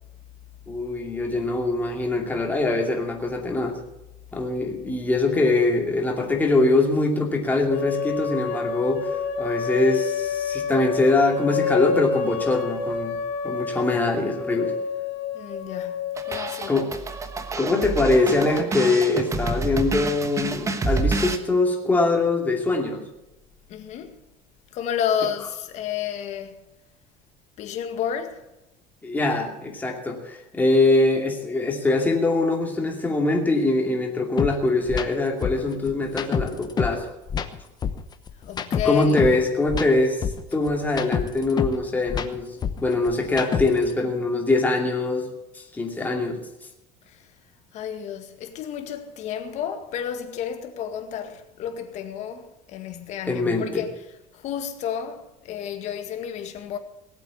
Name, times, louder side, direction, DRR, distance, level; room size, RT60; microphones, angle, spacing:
voice 1, 0.7-3.8 4.3-13.2 13.4-14.7 16.7-16.9 17.6-23.0 29.0-37.1 38.8-42.5 42.8-45.3 45.5-46.4 53.3-53.8, left 2 dB, 10° left, 2.6 m, -23 dB
sound 1, 7.7-16.6, left 6 dB, 75° left, 2.4 m, -29 dB
voice 2, 15.3-16.8 23.7-24.1 24.7-26.6 27.6-28.4 38.4-39.3 47.1-47.3 47.7-54.1 54.3-56.8, left 8 dB, 55° left, 1.9 m, -31 dB
sound 2, 16.2-21.4, right 3 dB, 20° right, 1.2 m, -28 dB
sound 3, 34.4-34.5 34.9-35.1 35.4-37.0 37.3-39.4 39.7-41.8 42.1-43.9, left 7 dB, 30° left, 1.0 m, -27 dB
18.5 x 8.2 x 7.1 m
cardioid pair, 140°, 14 cm